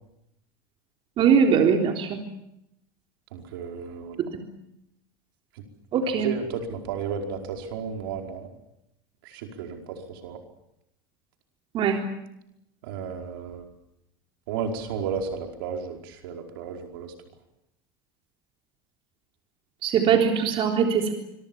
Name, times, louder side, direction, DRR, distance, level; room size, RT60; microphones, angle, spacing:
voice 1, 1.2-2.2 4.2-4.5 5.9-6.3 11.7-12.0 19.8-21.1, right 7 dB, 45° right, 2 dB, 3.7 m, -21 dB
voice 2, 3.3-4.2 6.2-8.5 9.2-10.4 12.8-13.6 14.5-17.1, right 6 dB, 70° right, 3 dB, 4.9 m, -33 dB
25.5 x 24.5 x 7.2 m, 0.83 s
hypercardioid pair, 85°, 12 cm